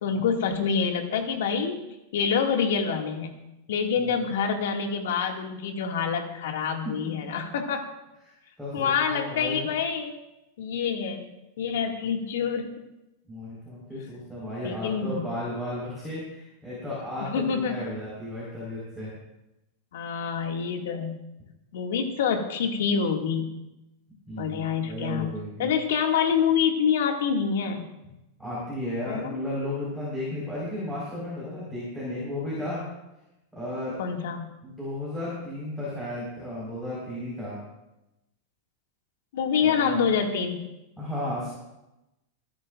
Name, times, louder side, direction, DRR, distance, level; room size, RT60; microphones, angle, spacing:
voice 1, 0.0-1.8 2.1-3.4 3.7-7.9 8.7-10.1 10.6-11.3 11.6-12.7 14.6-15.4 17.2-17.9 19.9-21.2 21.7-23.5 24.4-25.3 25.6-27.9 29.0-29.4 34.0-34.5 39.3-40.6, left 6 dB, 75° left, 2 dB, 2.3 m, -26 dB
voice 2, 8.6-9.7 13.3-19.1 24.3-24.6 24.8-25.7 28.4-32.8 33.5-34.0 34.6-37.6 39.6-40.1 41.0-41.5, left 1 dB, ahead, -8 dB, 5.0 m, -34 dB
27.0 x 10.0 x 2.6 m, 0.93 s
supercardioid pair, 155°, 0 cm